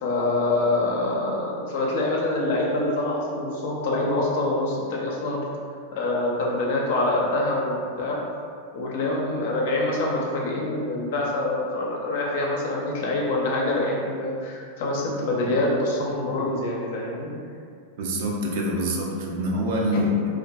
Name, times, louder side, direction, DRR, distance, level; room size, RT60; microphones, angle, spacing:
voice 1, 0.0-5.4 5.9-8.2 8.7-17.3 19.9-20.0, left 2 dB, 60° left, -2 dB, 0.5 m, -25 dB
voice 2, 18.0-20.3, left 1 dB, 55° right, -1 dB, 0.4 m, -25 dB
2.5 x 2.3 x 2.2 m, 2.3 s
figure-of-eight pair, 95°, 0 cm